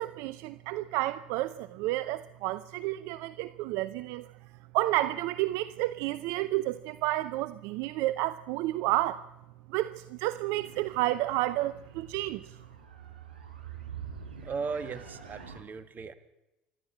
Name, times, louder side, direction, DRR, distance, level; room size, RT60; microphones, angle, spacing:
voice 1, 0.0-4.3 4.7-9.2 9.7-12.4, right 17 dB, 65° right, 0.7 m, -30 dB
sound 1, 10.6-15.6, right 7 dB, 90° right, 4.2 m, -46 dB
voice 2, 14.4-16.1, right 5 dB, 40° right, 2.3 m, -37 dB
26.5 x 12.0 x 8.6 m
hypercardioid pair, 65°, 5 cm